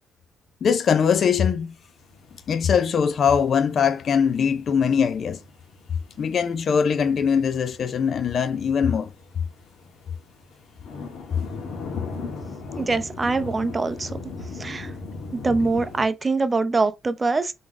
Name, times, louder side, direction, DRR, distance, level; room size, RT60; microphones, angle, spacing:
voice 1, 0.6-1.7 2.5-5.4 6.2-9.1, left 7 dB, 55° left, 0.5 m, -21 dB
sound 1, 1.8-16.1, left 3 dB, 70° left, 1.6 m, -39 dB
voice 2, 12.8-14.1 14.6-14.9 15.3-17.5, right 3 dB, 25° right, 0.6 m, -23 dB
3.9 x 3.5 x 3.5 m
cardioid pair, 90°, 0 cm